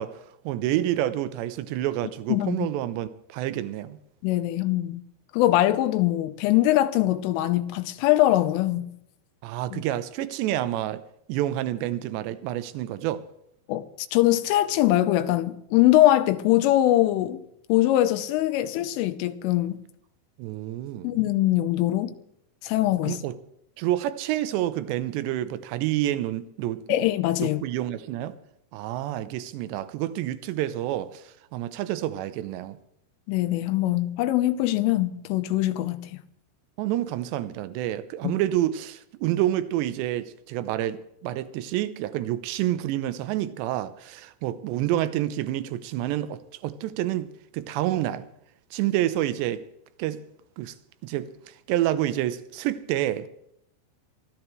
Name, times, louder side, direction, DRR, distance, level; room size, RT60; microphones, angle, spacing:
voice 1, 0.0-4.0 9.4-11.0 11.3-13.2 20.4-21.2 23.1-23.4 23.8-26.8 27.4-28.4 28.7-32.8 36.8-48.3 48.7-49.6 50.0-50.2 50.6-50.8 51.0-53.3, right 13 dB, 80° right, 2.7 m, -28 dB
voice 2, 2.3-2.7 4.2-5.0 5.3-8.9 9.7-9.8 13.7-17.4 17.7-19.8 21.0-22.1 22.6-23.2 26.9-27.6 33.3-36.1 38.2-38.3, left 15 dB, 85° left, 3.3 m, -22 dB
23.5 x 14.0 x 3.2 m
omnidirectional pair, 5.7 m